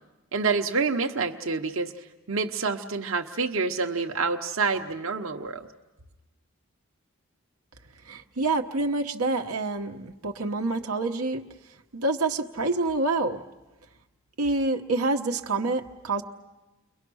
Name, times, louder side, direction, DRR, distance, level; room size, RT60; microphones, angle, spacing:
voice 1, 0.3-5.7, right 4 dB, 65° right, 3 dB, 1.0 m, -28 dB
voice 2, 8.1-11.4 11.9-13.4 14.4-16.2, right 2 dB, 90° right, 4 dB, 1.1 m, -27 dB
30.0 x 22.5 x 6.3 m, 1.1 s
head